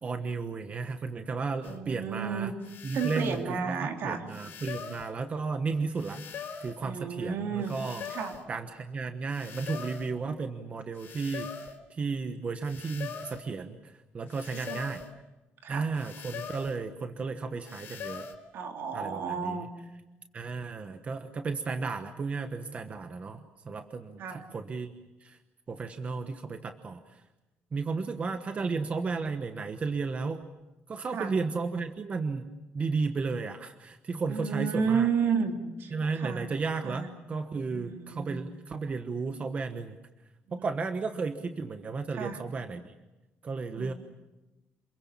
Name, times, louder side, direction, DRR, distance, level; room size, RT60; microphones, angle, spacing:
voice 1, 0.0-2.5 2.8-8.0 8.5-15.0 15.7-18.3 18.9-19.6 20.3-24.9 25.2-25.4 25.7-27.2 27.7-30.4 30.9-35.1 35.9-40.0 40.5-42.9 43.4-43.9, right 4 dB, 35° right, 8 dB, 1.2 m, -34 dB
sound 1, 1.6-1.8 2.6-3.5 4.3-5.1 6.0-6.8 7.6-8.5 9.3-10.1 11.0-11.8 12.6-13.5 14.3-15.1 16.0-16.8 17.6-18.3, left 6 dB, 65° left, 3.7 m, -42 dB
voice 2, 1.6-2.5 2.9-4.2 6.8-7.7 8.1-8.4 14.7-14.8 15.6-15.9 18.5-19.7 24.2-24.4 31.1-31.3 34.3-35.5 35.8-36.5 36.8-37.1 37.7-38.3 40.5-40.7 42.1-42.4 43.7-43.9, right 6 dB, 70° right, 4 dB, 3.2 m, -32 dB
27.5 x 22.5 x 7.3 m, 1.0 s
cardioid pair, 135°, 4 cm